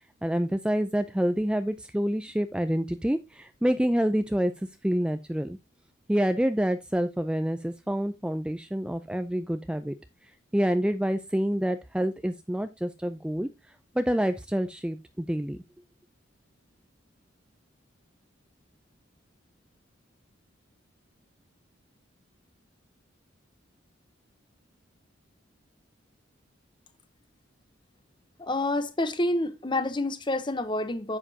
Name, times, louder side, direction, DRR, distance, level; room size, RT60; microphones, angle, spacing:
voice 1, 0.2-4.5 4.8-5.6 6.1-9.9 10.5-13.5 14.0-15.6, equal, 5° right, 0.4 m, -27 dB
voice 2, 28.4-31.2, left 1 dB, 25° left, 0.8 m, -28 dB
9.9 x 7.2 x 2.7 m
head